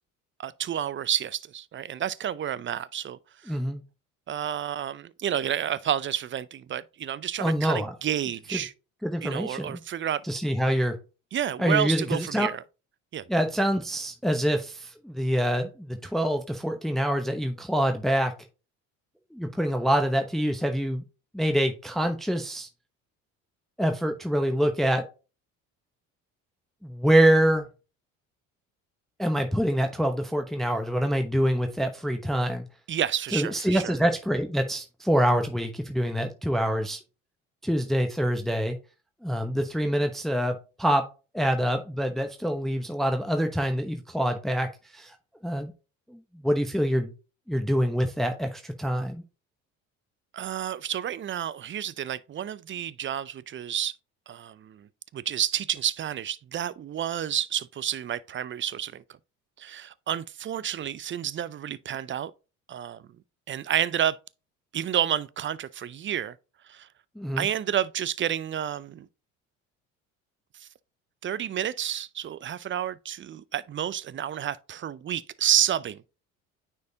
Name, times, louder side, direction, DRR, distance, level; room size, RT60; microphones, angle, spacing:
voice 1, 0.4-3.6 4.3-8.7 9.2-10.2 11.3-12.6 13.1-13.3 32.9-34.0 50.3-53.9 54.3-59.0 59.6-62.3 62.7-63.0 63.5-64.2 64.7-66.4 66.6-66.9 67.4-69.1 70.6-70.7 71.2-76.0, right 10 dB, 30° right, 0.5 m, -30 dB
voice 2, 3.5-3.8 7.4-7.9 8.5-8.6 9.0-9.8 10.2-11.0 11.6-12.5 13.3-18.3 19.3-21.0 21.3-22.7 23.8-25.0 26.8-27.6 29.2-32.7 33.3-37.0 37.6-38.8 39.2-41.0 41.3-45.1 45.4-45.7 46.1-47.1 47.5-49.2 67.2-67.5, equal, ahead, 0.9 m, -25 dB
9.3 x 4.5 x 2.8 m
hypercardioid pair, 60°, 40 cm